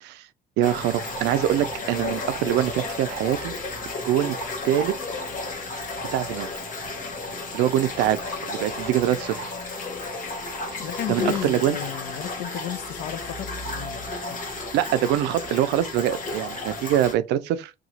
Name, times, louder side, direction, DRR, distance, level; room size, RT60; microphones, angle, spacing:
sound 1, 0.6-17.1, left 2 dB, 50° left, 1.1 m, -33 dB
voice 1, 0.6-3.5 4.0-4.4 4.6-5.0 6.1-6.5 7.5-9.5 10.7-10.8 11.1-11.8 14.7-17.7, right 12 dB, 90° right, 0.4 m, -24 dB
voice 2, 10.8-14.4 15.2-15.3, left 11 dB, 75° left, 0.5 m, -33 dB
2.9 x 2.3 x 4.0 m
cardioid pair, 110°, 17 cm